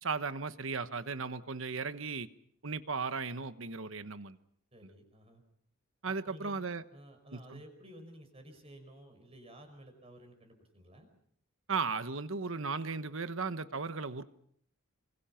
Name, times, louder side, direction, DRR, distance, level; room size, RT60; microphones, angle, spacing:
voice 1, 0.0-2.3 2.6-4.4 4.8-4.9 6.0-6.8 7.3-7.6 11.7-14.2, right 4 dB, 65° right, 12 dB, 1.1 m, -36 dB
voice 2, 4.7-5.4 6.1-6.7 6.9-11.1, right 1 dB, 25° right, 6 dB, 5.4 m, -54 dB
26.5 x 25.5 x 5.8 m, 0.65 s
head